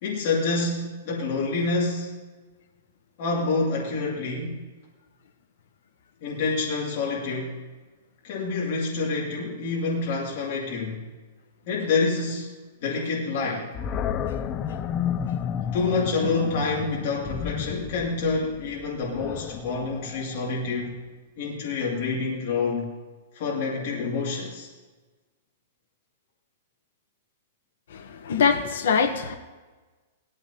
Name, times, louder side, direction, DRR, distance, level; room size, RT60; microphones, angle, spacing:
voice 1, 0.0-2.1 3.2-4.6 6.2-7.6 8.2-11.0 11.7-12.5 12.8-13.7 15.7-21.0 21.4-22.9 23.3-24.7, left 3 dB, 40° left, -5 dB, 2.4 m, -27 dB
Animal, 13.7-20.9, left 8 dB, 20° left, 0.4 m, -32 dB
voice 2, 27.9-29.3, left 6 dB, 75° left, 5 dB, 0.9 m, -23 dB
18.5 x 14.0 x 2.8 m, 1.3 s
supercardioid pair, 170°, 0 cm